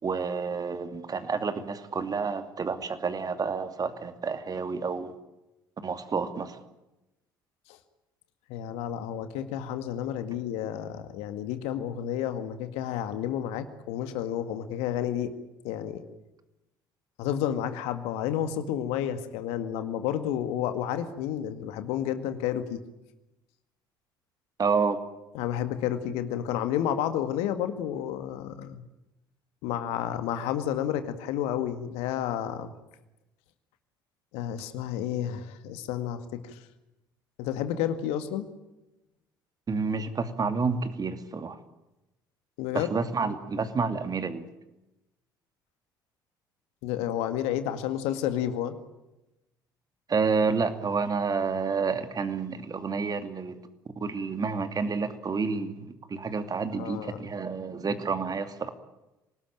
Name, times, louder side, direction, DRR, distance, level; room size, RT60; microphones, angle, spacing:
voice 1, 0.0-5.1 5.8-6.6 24.6-25.0 39.7-41.6 42.7-44.5 50.1-53.6 54.0-58.7, right 5 dB, 35° right, 9 dB, 2.6 m, -29 dB
voice 2, 8.5-15.3 15.6-16.0 17.2-22.8 25.3-28.8 29.6-32.7 34.3-36.6 37.4-38.5 42.6-42.9 46.8-48.7 56.8-57.2, left 10 dB, 65° left, 9 dB, 2.0 m, -31 dB
26.5 x 19.0 x 9.1 m, 0.97 s
figure-of-eight pair, 55°, 11 cm